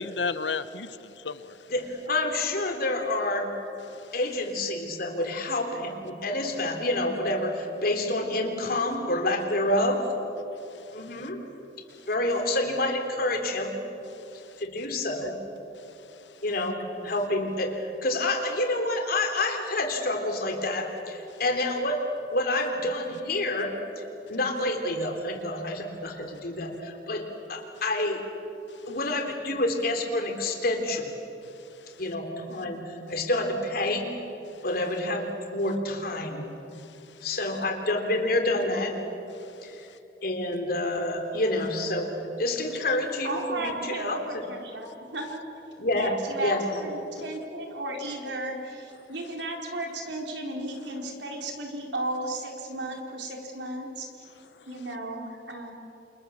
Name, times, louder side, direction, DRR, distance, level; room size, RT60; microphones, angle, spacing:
voice 1, 0.0-1.6 3.9-4.1 10.7-11.3 14.2-14.6 16.1-16.3 21.3-21.4 28.7-28.8 33.1-33.2 36.7-36.9 39.4-39.7, left 4 dB, 90° left, 1.0 m, -36 dB
voice 2, 1.7-3.5 4.1-10.0 10.9-11.4 12.1-13.8 14.6-15.4 16.4-22.1 22.3-23.7 24.3-28.3 28.9-31.1 32.0-34.2 34.6-36.5 37.2-39.0 39.6-39.7 40.2-42.1 42.4-44.4 45.8-46.1 46.4-46.7, left 1 dB, 60° left, 3.6 m, -28 dB
voice 3, 43.2-45.4 45.9-54.1 54.7-55.7, right 1 dB, 85° right, 4.4 m, -34 dB
29.0 x 28.0 x 7.3 m
head